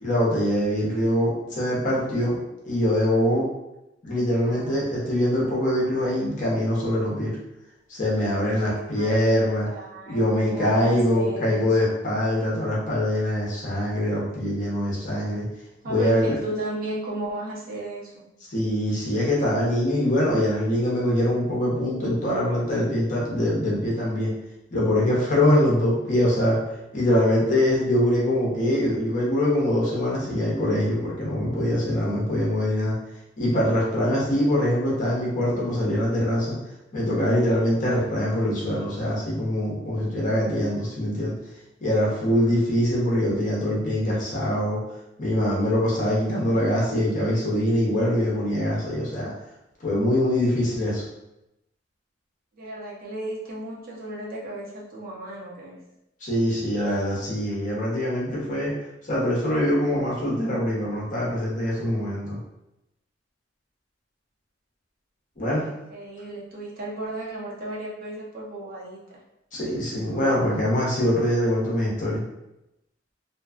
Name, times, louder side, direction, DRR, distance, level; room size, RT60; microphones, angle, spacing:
voice 1, 0.0-2.4 2.6-3.4 4.0-7.4 7.9-9.7 10.1-15.5 15.8-16.3 18.5-24.3 24.7-26.6 26.9-33.0 33.4-36.6 36.9-41.3 41.8-44.8 45.2-49.3 49.8-51.0 56.2-58.7 59.0-62.4 65.4-65.7 69.5-72.2, left 1 dB, 45° left, -5 dB, 0.8 m, -23 dB
voice 2, 4.4-4.8 8.5-9.3 9.7-11.9 15.8-18.3 52.5-55.8 65.4-69.2, right 1 dB, 50° right, -3 dB, 0.6 m, -35 dB
2.5 x 2.2 x 2.4 m, 0.90 s
head